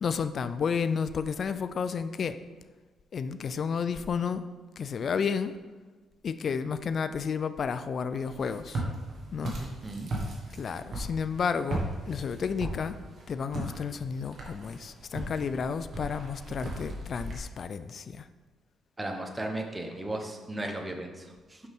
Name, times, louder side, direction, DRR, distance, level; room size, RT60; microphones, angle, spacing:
voice 1, 0.0-2.4 3.1-4.4 4.8-5.5 6.2-8.8 9.3-9.5 10.6-13.0 13.3-18.3, left 6 dB, 50° left, 12 dB, 0.3 m, -31 dB
Walk footsteps, 8.2-17.4, right 1 dB, 50° right, 1.6 m, -37 dB
voice 2, 19.0-21.6, right 1 dB, 20° right, 4 dB, 0.9 m, -35 dB
6.5 x 5.6 x 3.5 m, 1.3 s
cardioid pair, 90°, 0 cm